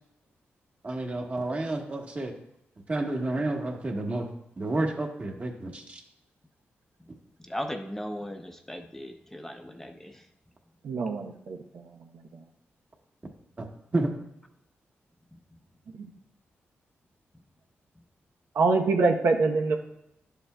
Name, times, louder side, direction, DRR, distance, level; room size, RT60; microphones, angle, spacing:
voice 1, 0.8-2.3 2.9-4.3 4.6-6.0 13.6-13.7 13.9-14.1, right 2 dB, 30° right, 2 dB, 1.3 m, -30 dB
voice 2, 7.4-10.2, equal, 10° left, 4 dB, 0.6 m, -37 dB
voice 3, 10.8-11.6 16.0-16.1 18.5-19.8, right 3 dB, 85° right, 3 dB, 0.8 m, -24 dB
11.5 x 7.1 x 2.2 m, 0.80 s
cardioid pair, 100°, 4 cm